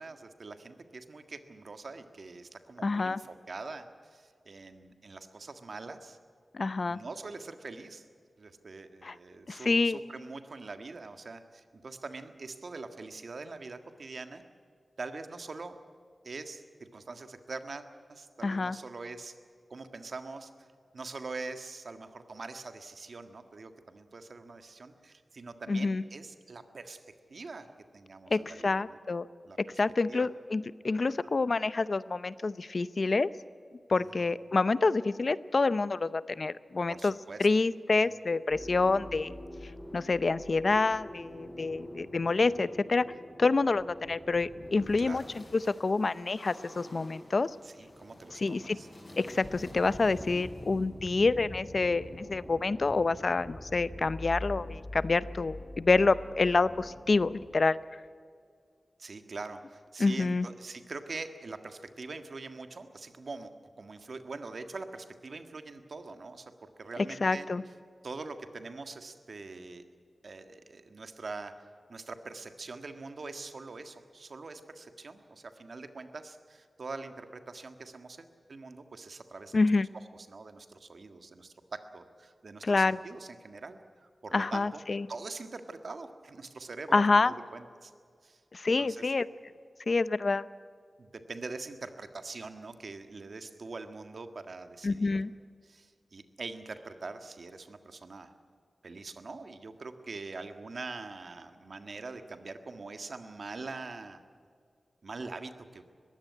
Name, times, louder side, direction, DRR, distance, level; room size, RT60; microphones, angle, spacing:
voice 1, 0.0-6.2 6.9-8.0 8.4-14.4 15.0-15.8 16.2-19.4 19.7-20.7 20.9-27.0 27.3-27.7 27.9-29.0 29.4-29.6 30.1-30.3 33.9-34.3 36.9-37.4 38.0-38.2 45.0-45.3 47.6-48.9 59.0-63.5 63.8-67.5 68.0-69.8 70.2-79.7 79.9-84.8 85.1-87.9 88.2-88.4 88.8-89.1 91.0-95.2 95.6-98.3 98.8-104.2 105.0-105.8, right 3 dB, 65° right, 8 dB, 1.7 m, -43 dB
voice 2, 2.8-3.2 6.5-7.0 9.0-9.2 9.5-10.0 18.4-18.8 25.7-26.0 28.3-29.3 29.6-33.3 33.9-37.1 37.4-39.4 39.9-43.1 43.4-47.5 48.4-48.8 49.2-57.8 60.0-60.5 67.0-67.6 79.5-79.9 82.6-83.0 84.3-85.1 86.9-87.3 88.5-89.3 89.9-90.5 94.8-95.3, left 3 dB, 55° left, 16 dB, 0.6 m, -27 dB
sound 1, 38.5-57.4, left 1 dB, 30° left, 7.9 m, -45 dB
21.0 x 16.0 x 9.6 m, 2.2 s
wide cardioid pair, 85°, 0 cm